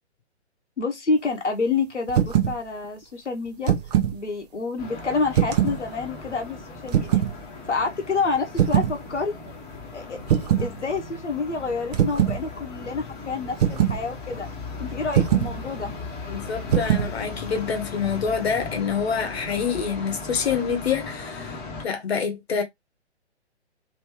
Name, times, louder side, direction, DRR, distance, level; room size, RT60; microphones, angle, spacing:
voice 1, 0.8-3.7 4.1-7.2 7.7-9.3 9.9-10.2 10.6-14.5 14.8-15.9, left 4 dB, 85° left, 1.1 m, -28 dB
sound 1, 2.1-2.6 3.5-4.2 5.3-5.8 6.9-7.3 8.6-9.0 10.3-10.7 11.9-12.4 13.6-14.0 15.1-15.5 16.7-17.1, right 10 dB, 35° right, 0.8 m, -21 dB
sound 2, 4.8-21.8, left 4 dB, 15° left, 1.1 m, -37 dB
voice 2, 16.3-22.6, left 6 dB, 65° left, 1.1 m, -27 dB
3.2 x 3.0 x 3.0 m
figure-of-eight pair, 130°, 34 cm